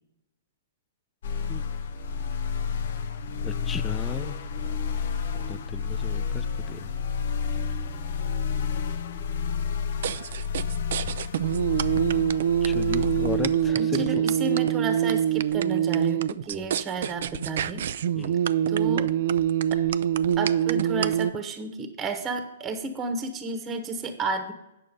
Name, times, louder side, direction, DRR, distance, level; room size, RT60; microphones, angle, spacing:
sound 1, 1.2-13.7, left 6 dB, 65° left, 0.7 m, -30 dB
voice 1, 3.4-4.3 5.3-6.9 12.6-14.2 16.5-16.7 18.2-18.4, left 6 dB, 15° left, 10 dB, 0.4 m, -36 dB
sound 2, 10.0-21.3, right 10 dB, 65° right, 0.3 m, -25 dB
voice 2, 13.7-17.9 18.7-19.1 20.4-24.5, right 3 dB, 20° right, 8 dB, 1.1 m, -32 dB
9.0 x 6.5 x 5.2 m, 0.91 s
hypercardioid pair, 140°, 0 cm